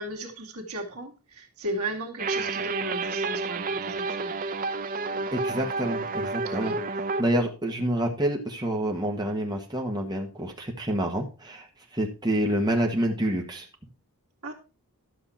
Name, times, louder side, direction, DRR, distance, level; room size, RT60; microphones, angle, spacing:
voice 1, 0.0-4.3 5.1-5.3 6.6-6.8 7.2-7.3 14.4-14.5, right 1 dB, 75° right, 1 dB, 2.1 m, -35 dB
sound 1, 2.2-7.2, right 3 dB, 40° right, 0.7 m, -30 dB
voice 2, 5.3-6.7 7.2-11.7 11.9-13.7, right 1 dB, 20° right, 1 dB, 1.5 m, -27 dB
11.5 x 6.9 x 4.2 m, 0.31 s
head